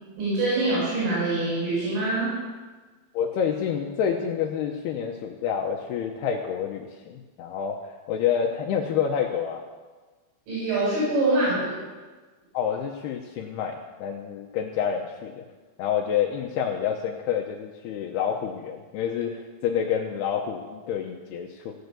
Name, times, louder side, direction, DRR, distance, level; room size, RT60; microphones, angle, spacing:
voice 1, 0.2-2.3 10.5-11.7, right 2 dB, 90° right, -9 dB, 8.0 m, -24 dB
voice 2, 3.1-7.8 8.1-9.6 12.5-15.4 15.8-21.7, left 8 dB, 85° left, 2 dB, 2.3 m, -28 dB
15.5 x 9.4 x 6.8 m, 1.3 s
omnidirectional pair, 5.6 m